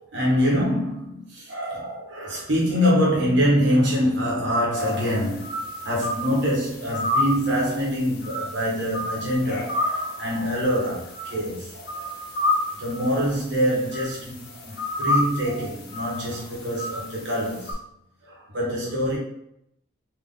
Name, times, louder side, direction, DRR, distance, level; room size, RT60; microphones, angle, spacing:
voice 1, 0.0-12.1 12.8-17.7 18.2-19.2, equal, 60° right, 1.4 m, -25 dB
sound 1, 4.8-17.7, left 1 dB, 55° left, 0.9 m, -31 dB
3.7 x 3.2 x 3.8 m
head